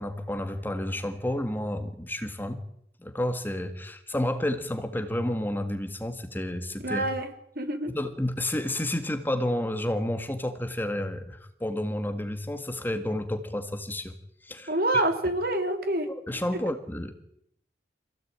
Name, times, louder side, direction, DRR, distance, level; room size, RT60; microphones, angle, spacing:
voice 1, 0.0-2.6 3.0-7.0 7.9-14.1 14.4-14.7 16.1-17.2, left 1 dB, 10° left, 7 dB, 1.8 m, -30 dB
voice 2, 6.8-7.9 14.7-16.1, right 1 dB, 55° right, 6 dB, 3.2 m, -27 dB
26.0 x 17.0 x 8.9 m, 0.74 s
head